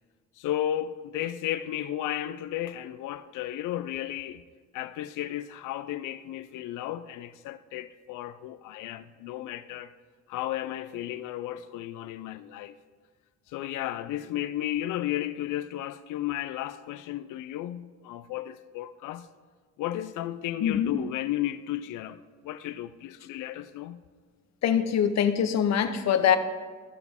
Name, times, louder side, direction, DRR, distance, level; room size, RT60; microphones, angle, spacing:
voice 1, 0.4-4.4 4.7-9.9 10.3-12.8 13.5-19.3 19.8-24.0, left 12 dB, 85° left, 0.5 m, -34 dB
voice 2, 20.6-21.0 24.6-26.4, left 8 dB, 60° left, 0.8 m, -23 dB
15.0 x 5.9 x 3.6 m
cardioid pair, 90°, 30 cm